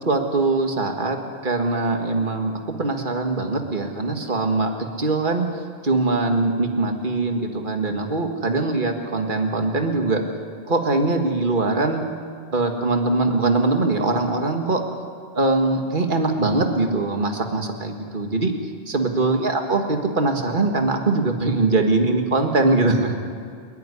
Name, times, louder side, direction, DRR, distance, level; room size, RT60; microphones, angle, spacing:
voice 1, 0.1-1.2 1.4-2.5 2.8-10.2 10.7-12.1 12.5-14.8 15.3-18.5 18.9-23.2, right 3 dB, 50° right, 4 dB, 2.0 m, -22 dB
30.0 x 10.5 x 9.9 m, 2.3 s
omnidirectional pair, 1.1 m